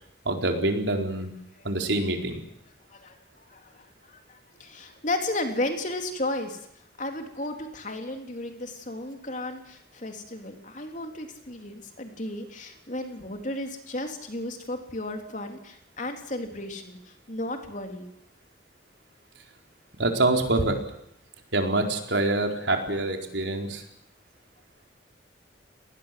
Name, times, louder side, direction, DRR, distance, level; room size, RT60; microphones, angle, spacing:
voice 1, 0.2-1.3 1.6-2.4 20.0-20.8 21.5-23.8, right 2 dB, 80° right, 3 dB, 4.4 m, -25 dB
voice 2, 2.9-6.6 7.0-18.1, left 1 dB, 45° left, 4 dB, 3.6 m, -34 dB
29.0 x 20.0 x 7.8 m, 0.72 s
head